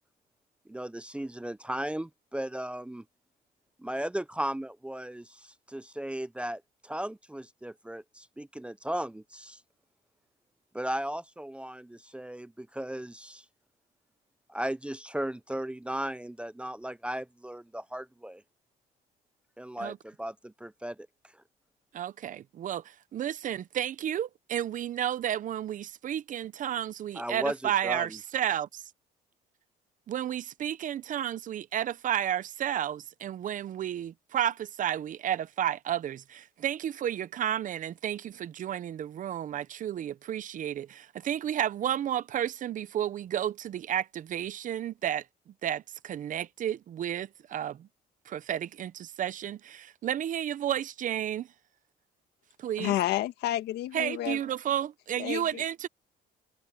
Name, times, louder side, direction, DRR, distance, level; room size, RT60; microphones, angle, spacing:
voice 1, 0.7-3.0 3.8-5.3 5.7-9.6 10.7-13.4 14.5-18.4 19.6-21.0 27.2-28.1, right 1 dB, 5° right, 0.6 m, -36 dB
voice 2, 21.9-28.8 30.1-47.9 48.3-51.5 52.6-52.9 53.9-55.9, right 10 dB, 50° right, 0.8 m, -32 dB
voice 3, 52.8-54.4 55.2-55.6, left 14 dB, 80° left, 1.7 m, -30 dB
cardioid pair, 110°, 17 cm